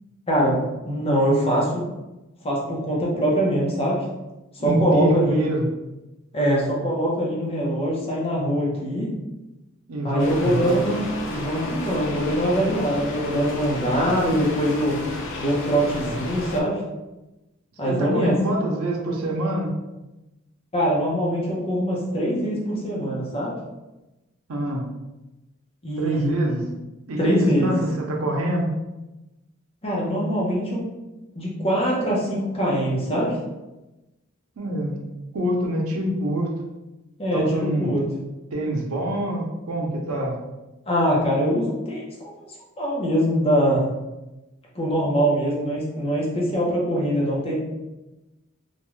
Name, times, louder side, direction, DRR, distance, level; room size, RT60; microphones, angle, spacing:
voice 1, 0.3-0.6 0.8-1.8 2.4-4.0 4.5-5.5 6.3-9.1 10.0-11.0 11.3-15.0 15.4-16.8 17.8-18.3 20.7-23.5 25.8-26.7 27.2-27.7 29.8-30.8 31.3-33.3 37.2-38.0 40.9-42.0 42.8-43.9 44.7-47.6, equal, 30° left, -4 dB, 0.7 m, -23 dB
voice 2, 4.6-5.7 6.4-6.7 9.9-10.8 17.9-19.7 24.5-24.9 26.0-26.6 27.1-28.7 34.6-35.0 35.3-36.5 37.3-37.9 38.5-40.4, right 1 dB, 90° right, 0 dB, 0.6 m, -25 dB
sound 1, 10.2-16.6, left 2 dB, 60° left, 0.4 m, -32 dB
2.5 x 2.2 x 3.1 m, 1.0 s
head